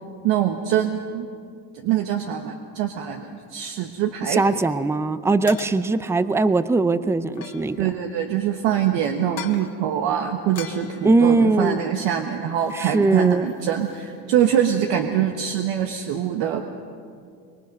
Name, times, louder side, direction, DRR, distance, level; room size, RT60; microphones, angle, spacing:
voice 1, 0.2-1.3 1.7-4.7 7.8-16.6, right 9 dB, 70° right, 4 dB, 1.4 m, -24 dB
voice 2, 4.2-7.9 11.0-11.8 12.7-13.5, right 3 dB, 5° right, 13 dB, 0.4 m, -20 dB
sound 1, 4.4-4.6 5.5-6.2 7.3-8.0 9.2-9.8 10.5-12.0 12.5-12.8 13.1-14.1, left 9 dB, 45° left, 1.7 m, -41 dB
25.0 x 22.0 x 5.3 m, 2.3 s
cardioid pair, 125°, 46 cm